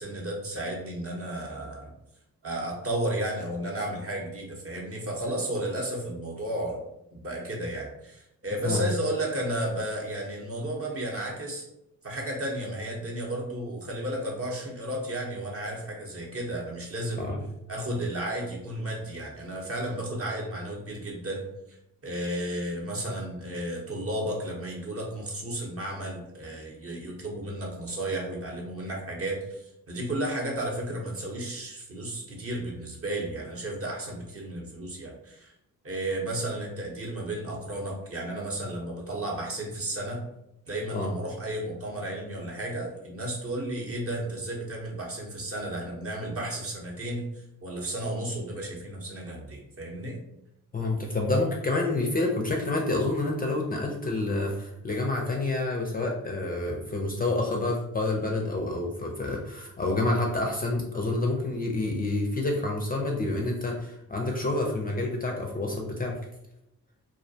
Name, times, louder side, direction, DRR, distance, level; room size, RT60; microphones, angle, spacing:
voice 1, 0.0-1.9 2.4-6.8 7.1-11.7 12.0-17.3 17.7-21.4 22.0-35.5 35.8-40.2 40.7-50.2, right 1 dB, 40° right, -1 dB, 0.7 m, -33 dB
voice 2, 50.7-66.2, left 2 dB, 25° left, 0 dB, 0.4 m, -28 dB
2.3 x 2.1 x 2.6 m, 0.83 s
cardioid pair, 75°, 36 cm